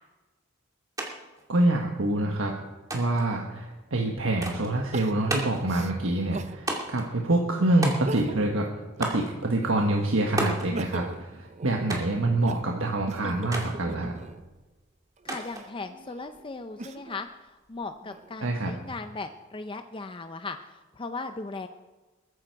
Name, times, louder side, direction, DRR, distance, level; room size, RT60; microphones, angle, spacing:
sound 1, 1.0-1.1 1.4-2.1 2.9-3.3 4.4-4.7 5.3-5.7 6.7-7.1 7.8-8.4 9.0-9.3 10.4-10.7 11.9-12.2 13.5-13.7 15.3-15.7, right 2 dB, 20° right, 2.4 m, -32 dB
voice 1, 1.5-2.5 2.9-8.7 9.0-14.1 18.4-18.7, right 2 dB, 90° right, 1 dB, 1.4 m, -26 dB
Crying sobbing, 3.6-3.7 4.9-6.6 7.1-7.2 7.9-8.6 9.0-10.0 10.5-14.5 15.2-17.2 17.8-18.6, right 2 dB, 35° right, 0.6 m, -41 dB
voice 2, 15.2-21.7, left 3 dB, 25° left, 8 dB, 0.5 m, -38 dB
21.5 x 9.9 x 4.6 m, 1.2 s
head